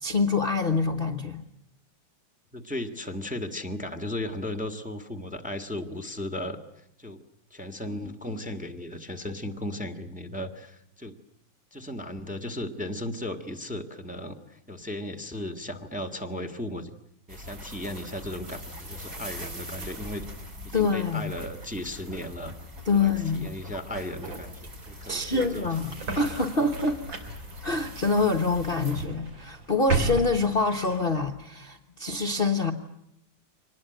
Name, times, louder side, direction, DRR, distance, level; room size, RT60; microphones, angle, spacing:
voice 1, 0.0-1.4 20.7-21.3 22.8-23.5 25.1-27.0 27.6-32.7, left 3 dB, 35° left, 6 dB, 1.2 m, -26 dB
voice 2, 2.5-7.2 7.5-11.2 11.7-16.9 17.3-20.2 20.6-22.6 22.9-25.7, left 1 dB, 5° right, 8 dB, 1.4 m, -36 dB
sound 1, 17.3-29.1, equal, 45° right, 4.4 m, -42 dB
sound 2, 23.8-31.3, right 3 dB, 75° right, 3.9 m, -35 dB
25.0 x 20.0 x 9.1 m, 0.79 s
omnidirectional pair, 2.1 m